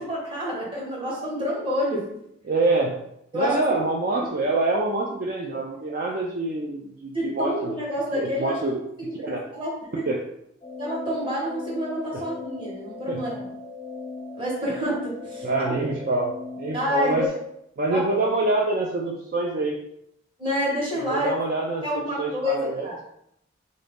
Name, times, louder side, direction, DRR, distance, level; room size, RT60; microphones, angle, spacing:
voice 1, 0.0-2.1 3.3-3.8 7.1-10.1 10.8-13.5 14.4-15.7 16.7-17.3 17.9-18.2 20.4-21.3 21.8-23.0, equal, 25° right, -4 dB, 1.2 m, -28 dB
voice 2, 2.5-3.0 3.3-7.7 8.1-8.7 9.2-9.4 10.1-10.2 13.1-13.2 15.4-16.3 16.6-17.3 17.8-19.8 21.1-22.9, right 2 dB, 50° right, -1 dB, 0.4 m, -25 dB
sound 1, 10.6-17.3, left 4 dB, 25° left, 0.4 m, -37 dB
3.8 x 2.7 x 3.5 m, 0.76 s
head